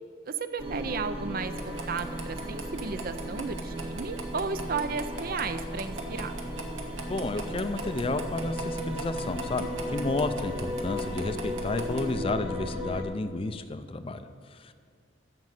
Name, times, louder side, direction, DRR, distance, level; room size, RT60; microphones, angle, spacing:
voice 1, 0.3-6.3, right 5 dB, 45° right, 10 dB, 0.5 m, -34 dB
sound 1, 0.6-13.0, equal, 30° right, 1.3 m, -35 dB
sound 2, 1.5-12.1, right 3 dB, 85° right, 1.4 m, -43 dB
voice 2, 7.1-14.7, left 2 dB, 30° left, 10 dB, 0.4 m, -32 dB
13.5 x 5.3 x 7.6 m, 2.2 s
head